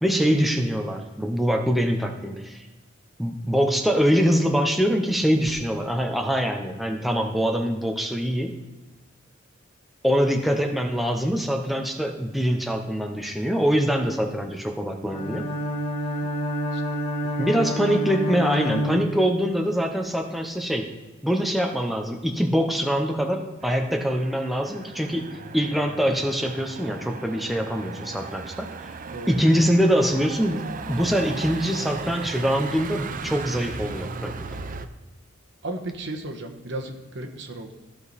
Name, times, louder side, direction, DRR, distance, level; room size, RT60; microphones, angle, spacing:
voice 1, 0.0-2.7 3.2-8.5 10.0-15.5 17.4-20.9 21.2-25.3 25.5-28.7 29.3-34.3, equal, ahead, 3 dB, 0.7 m, -24 dB
Bowed string instrument, 15.1-19.7, equal, 30° left, 1.7 m, -28 dB
voice 2, 16.7-17.4 27.6-27.7 29.1-29.3 35.6-37.7, right 2 dB, 65° right, 3 dB, 1.2 m, -36 dB
Motor vehicle (road), 23.6-34.9, right 4 dB, 45° right, 0.5 m, -37 dB
14.5 x 5.0 x 4.1 m, 1.2 s
head